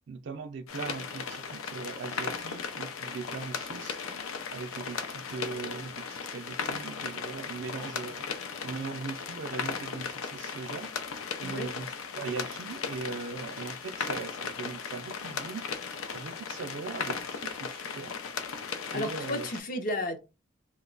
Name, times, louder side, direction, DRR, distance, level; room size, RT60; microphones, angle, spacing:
voice 1, 0.1-4.0 4.5-8.3 8.6-10.9 11.4-18.1 18.9-19.5, right 4 dB, 60° right, 0.3 m, -40 dB
sound 1, 0.7-19.6, left 5 dB, 90° left, 0.5 m, -37 dB
voice 2, 18.9-20.2, left 1 dB, 40° left, 0.5 m, -33 dB
2.9 x 2.1 x 3.7 m
head